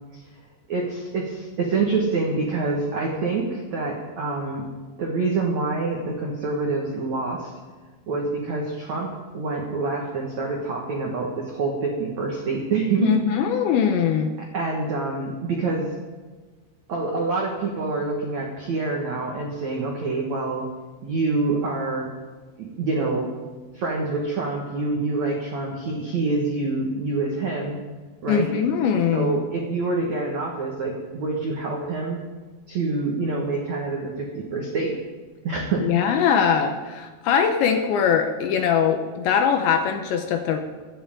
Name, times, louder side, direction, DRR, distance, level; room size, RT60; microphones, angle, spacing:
voice 1, 0.7-4.7 5.0-7.5 8.1-13.2 14.5-15.9 16.9-20.7 21.0-22.1 22.6-23.3 23.7-27.8 28.2-28.5 29.1-32.2 32.7-35.0 35.4-35.9, right 3 dB, 75° right, -1 dB, 1.6 m, -26 dB
voice 2, 13.0-14.3 28.3-29.4 35.8-40.6, left 7 dB, 75° left, 5 dB, 2.9 m, -21 dB
24.5 x 9.9 x 3.8 m, 1.3 s
omnidirectional pair, 5.9 m